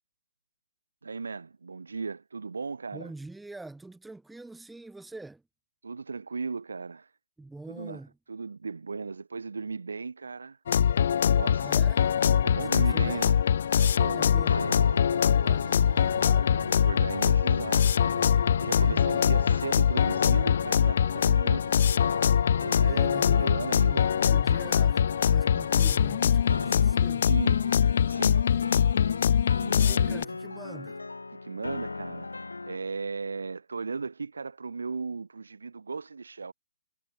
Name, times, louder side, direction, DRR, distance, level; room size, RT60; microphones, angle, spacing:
voice 1, 1.0-3.1 5.8-7.1 7.7-8.0 8.3-10.6 11.4-11.7 12.4-13.4 13.8-14.7 15.4-15.6 16.8-22.2 22.5-24.3 27.3-27.6 28.1-28.4 29.4-30.2 31.3-32.3 32.6-36.5, right 4 dB, 70° right, 0.9 m, -36 dB
voice 2, 2.9-5.4 7.4-8.2 11.6-12.1 12.5-13.3 14.1-16.7 18.8-19.5 22.8-23.4 23.9-27.3 29.8-31.0, right 2 dB, 5° right, 2.4 m, -45 dB
sound 1, 10.7-30.2, left 8 dB, 50° left, 0.3 m, -23 dB
sound 2, 12.9-32.8, left 3 dB, 80° left, 2.6 m, -39 dB
sound 3, 14.0-21.8, right 10 dB, 45° right, 5.3 m, -46 dB
figure-of-eight pair, 135°, 0 cm